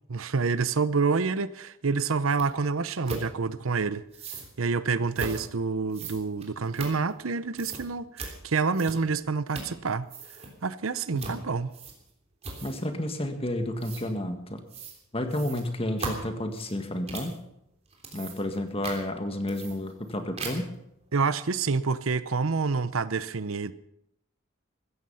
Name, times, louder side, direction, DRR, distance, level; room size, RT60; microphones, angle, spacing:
voice 1, 0.1-4.0 4.6-10.1 10.6-11.7 21.1-23.7, right 4 dB, 90° right, 0.8 m, -27 dB
sound 1, 2.4-2.5 3.1-3.3 4.1-4.5 5.1-5.4 5.9-7.3 7.6-7.8 8.2-8.3 8.7-9.2 9.5-9.8 10.0-10.5 11.2-11.4 11.7-12.1 12.4-12.9 13.8-14.0 14.7-15.0 15.3-17.4 17.9-18.6 18.8-19.0 19.5-20.1 20.4-20.8, right 3 dB, 30° right, 3.4 m, -38 dB
voice 2, 11.1-11.5 12.6-14.6 15.1-17.4 18.1-20.7, left 1 dB, 30° left, 1.8 m, -31 dB
15.5 x 14.0 x 5.7 m
head